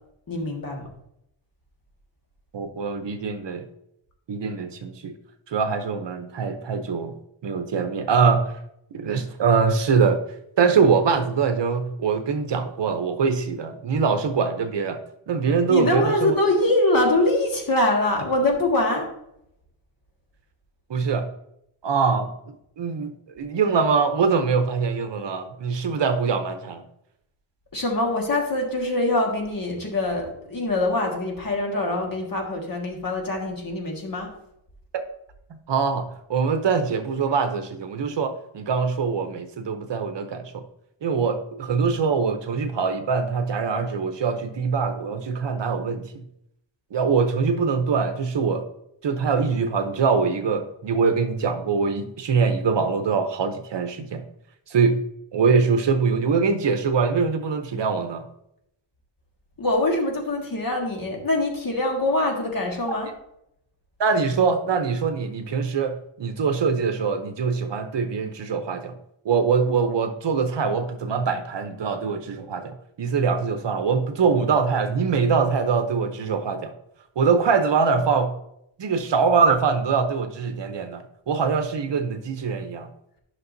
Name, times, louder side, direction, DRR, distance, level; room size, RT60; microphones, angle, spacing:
voice 1, 0.3-0.9 15.7-19.1 27.7-34.3 59.6-63.1, left 2 dB, 45° left, 1 dB, 1.6 m, -24 dB
voice 2, 2.5-3.6 4.3-5.1 5.5-7.1 7.4-8.5 8.9-10.2 10.6-15.0 15.3-16.3 20.9-21.3 21.8-22.3 22.8-26.8 34.9-35.0 35.5-40.6 41.0-46.2 46.9-48.6 49.0-54.2 54.7-55.0 55.3-58.2 64.0-68.9 69.2-76.7 77.2-78.4 78.8-82.9, right 5 dB, 60° right, 8 dB, 0.7 m, -23 dB
11.0 x 6.0 x 2.6 m, 0.77 s
wide cardioid pair, 180°, 49 cm